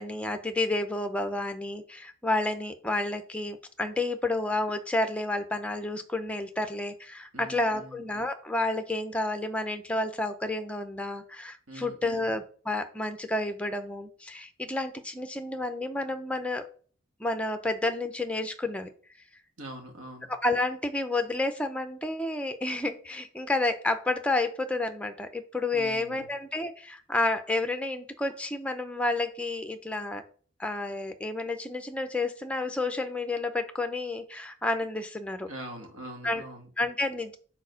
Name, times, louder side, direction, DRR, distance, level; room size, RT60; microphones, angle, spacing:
voice 1, 0.0-16.7 17.2-18.9 20.3-30.2 30.6-35.5 36.2-36.4 36.8-37.4, left 2 dB, 5° left, 8 dB, 0.5 m, -30 dB
voice 2, 7.3-8.0 11.7-12.3 19.6-20.3 25.7-26.3 35.5-36.7, right 1 dB, 80° right, 2 dB, 1.6 m, -43 dB
4.6 x 4.1 x 5.1 m, 0.43 s
head